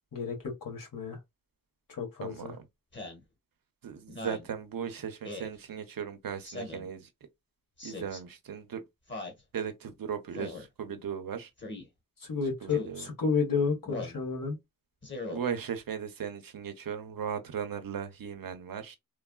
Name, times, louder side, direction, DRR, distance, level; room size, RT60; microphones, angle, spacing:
voice 1, 0.1-1.2 1.9-2.5 12.2-14.6, left 5 dB, 80° left, 1.3 m, -31 dB
voice 2, 2.2-2.7 3.8-7.1 7.8-8.8 9.5-11.5 12.6-13.1 15.3-19.0, right 7 dB, 90° right, 0.6 m, -37 dB
Speech synthesizer, 2.9-3.2 4.1-4.5 5.2-5.5 6.4-6.9 7.8-8.2 9.1-9.4 10.3-10.7 11.6-11.9 12.7-13.0 13.9-14.2 15.0-15.4, left 2 dB, 35° left, 1.0 m, -40 dB
3.2 x 2.3 x 2.2 m
wide cardioid pair, 55°, 33 cm